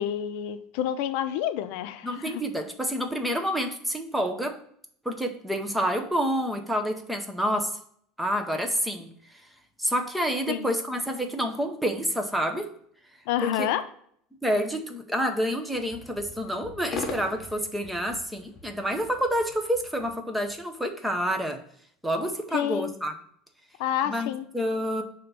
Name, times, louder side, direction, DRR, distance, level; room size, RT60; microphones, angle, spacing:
voice 1, 0.0-2.4 10.5-10.7 13.3-13.8 22.5-22.9 23.8-24.5, left 11 dB, 65° left, 11 dB, 0.5 m, -29 dB
voice 2, 2.0-4.6 5.0-7.8 8.2-9.1 9.8-12.7 13.4-13.7 14.4-21.6 22.0-23.2 24.1-25.0, equal, 5° right, 4 dB, 0.6 m, -28 dB
sound 1, 15.7-20.6, left 3 dB, 25° left, 0.9 m, -41 dB
5.6 x 3.4 x 5.2 m, 0.65 s
cardioid pair, 170°, 0 cm